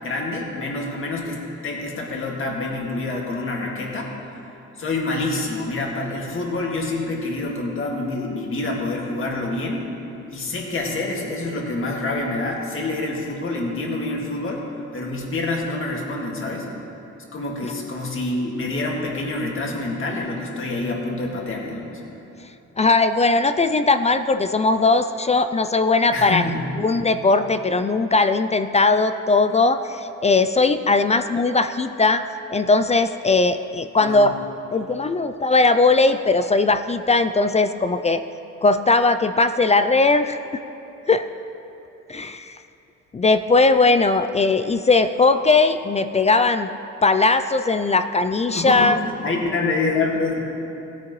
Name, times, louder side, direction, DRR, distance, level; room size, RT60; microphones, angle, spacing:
voice 1, 0.0-4.1 4.8-9.9 10.3-14.7 14.9-16.7 17.3-22.0 26.1-26.6 34.0-34.3 48.5-50.4, left 2 dB, 45° left, -1 dB, 2.1 m, -27 dB
voice 2, 22.8-26.4 26.8-32.2 32.5-34.3 34.7-38.2 38.6-40.4 41.1-41.2 42.1-42.6 43.1-46.7 47.0-49.0, left 3 dB, 25° left, 10 dB, 0.3 m, -19 dB
16.5 x 9.5 x 3.1 m, 2.9 s
cardioid pair, 90°, 30 cm